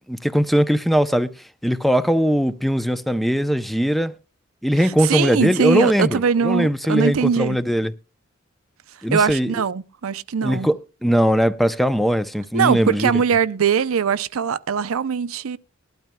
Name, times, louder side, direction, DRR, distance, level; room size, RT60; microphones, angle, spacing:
voice 1, 0.0-1.3 1.6-4.1 4.6-7.9 9.0-9.5 10.4-13.1, equal, ahead, 0.5 m, -20 dB
voice 2, 4.7-7.6 9.1-10.7 12.5-15.6, right 6 dB, 80° right, 0.5 m, -21 dB
20.0 x 12.0 x 2.2 m
head